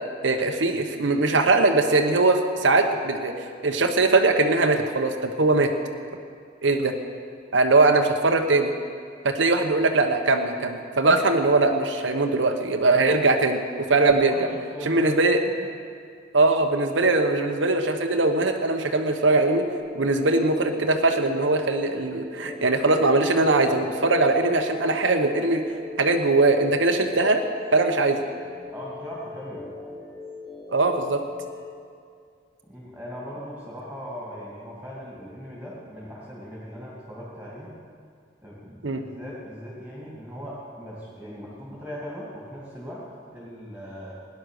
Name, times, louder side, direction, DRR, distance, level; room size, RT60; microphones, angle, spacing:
voice 1, 0.2-5.7 6.6-6.9 7.5-8.7 9.2-13.6 13.9-14.5 14.8-15.4 16.3-19.7 19.9-25.6 26.0-27.4 27.7-28.2 30.7-31.2 38.8-39.0, right 3 dB, 80° right, 4 dB, 1.0 m, -21 dB
voice 2, 14.0-15.1 15.6-15.7 28.7-29.7 32.7-37.7 38.4-43.0 43.3-44.1, equal, 10° right, -6 dB, 2.6 m, -39 dB
sound 1, 19.2-31.7, left 4 dB, 15° left, 2.8 m, -41 dB
17.5 x 10.5 x 6.6 m, 2.2 s
head